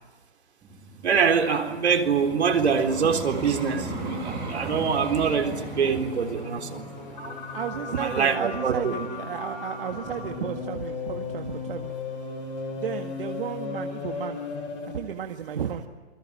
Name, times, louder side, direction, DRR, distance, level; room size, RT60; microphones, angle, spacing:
Vehicle, 0.6-9.7 10.3-10.5, right 3 dB, 10° right, 5.3 m, -38 dB
voice 1, 1.0-7.4 7.9-9.1, right 6 dB, 70° right, 6 dB, 4.0 m, -25 dB
sound 1, 2.4-15.1, left 4 dB, 15° left, 6.1 m, -37 dB
voice 2, 7.5-12.0 12.8-14.5 14.9-15.9, right 8 dB, 50° right, 4 dB, 1.8 m, -33 dB
28.5 x 21.5 x 9.0 m, 1.4 s
hypercardioid pair, 165°, 35 cm